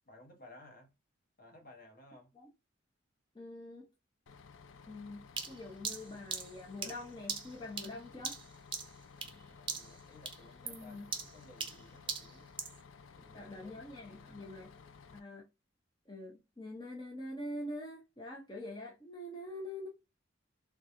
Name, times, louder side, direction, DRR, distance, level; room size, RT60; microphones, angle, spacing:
voice 1, 0.0-0.9 1.4-2.3 9.1-12.5 13.1-14.6, left 1 dB, 45° left, 0.9 m, -58 dB
voice 2, 3.3-3.9 4.9-8.4 10.6-11.1 13.3-14.7 15.1-15.5 16.1-19.9, left 1 dB, 20° left, 0.7 m, -45 dB
Bus, 4.3-15.2, left 5 dB, 70° left, 0.4 m, -56 dB
sound 1, 5.4-9.4 9.7-10.0 10.3-12.8, right 6 dB, 25° right, 0.6 m, -40 dB
3.7 x 2.3 x 2.8 m
head